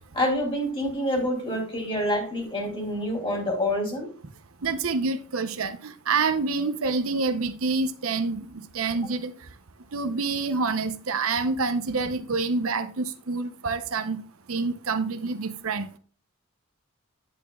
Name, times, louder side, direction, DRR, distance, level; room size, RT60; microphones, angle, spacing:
voice 1, 0.1-4.1, left 1 dB, 25° left, 2.8 m, -27 dB
voice 2, 4.6-9.3 9.9-14.2 14.5-15.9, right 4 dB, 70° right, 0.7 m, -27 dB
9.2 x 8.4 x 2.3 m
head